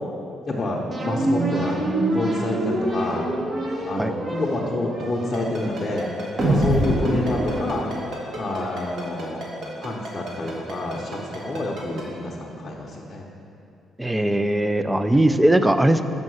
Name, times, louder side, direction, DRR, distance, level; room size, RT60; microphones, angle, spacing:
voice 1, 0.5-1.8 2.1-3.3 3.8-6.1 6.4-8.0 8.4-9.5 9.8-13.3, left 2 dB, 35° left, -3 dB, 0.7 m, -28 dB
sound 1, 0.9-8.4, right 1 dB, 45° right, 1.1 m, -25 dB
Ringtone, 5.3-12.0, right 1 dB, 75° right, 1.6 m, -35 dB
voice 2, 14.0-16.0, right 1 dB, 10° right, 10 dB, 0.3 m, -19 dB
5.4 x 5.3 x 6.3 m, 2.8 s
cardioid pair, 90°, 0 cm